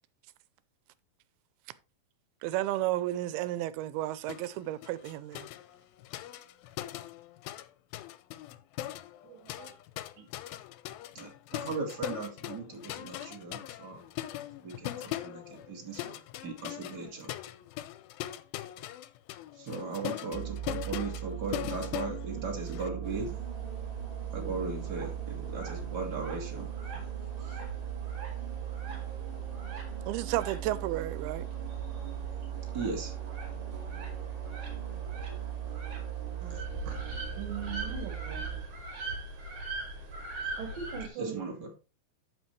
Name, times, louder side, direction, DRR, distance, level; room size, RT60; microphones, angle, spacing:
voice 1, 2.4-5.5 30.1-31.5, right 15 dB, 90° right, 2.6 m, -32 dB
sound 1, 4.3-4.5 4.8-7.7 7.9-22.9, left 13 dB, 80° left, 2.3 m, -40 dB
voice 2, 9.2-9.7 36.4-36.6 37.4-38.4 40.6-41.7, right 7 dB, 70° right, 2.9 m, -40 dB
voice 3, 11.1-14.0 14.6-17.3 19.6-23.4 24.3-26.7 27.4-27.6 32.7-33.1 41.2-41.7, right 4 dB, 35° right, 2.1 m, -38 dB
sound 2, 20.3-38.6, right 11 dB, 15° right, 2.1 m, -38 dB
sound 3, 23.0-41.1, right 1 dB, 55° right, 3.5 m, -43 dB
13.5 x 5.0 x 3.2 m
omnidirectional pair, 4.3 m